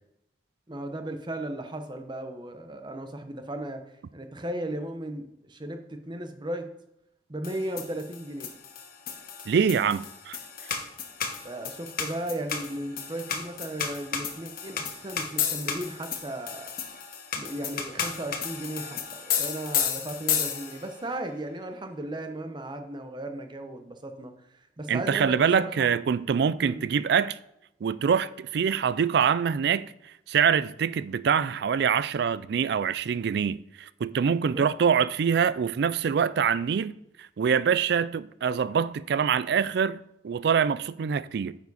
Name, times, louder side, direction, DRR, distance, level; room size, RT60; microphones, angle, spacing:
voice 1, 0.7-6.7 7.3-8.5 11.4-16.7 17.3-25.9 26.6-26.8 34.4-34.7, right 1 dB, 25° right, 0.8 m, -36 dB
sound 1, 7.4-21.0, left 7 dB, 55° left, 1.1 m, -33 dB
voice 2, 9.5-10.4 24.9-27.4 27.8-29.9 30.3-36.9 37.2-41.6, right 7 dB, 65° right, 0.3 m, -25 dB
9.2 x 7.0 x 4.1 m
head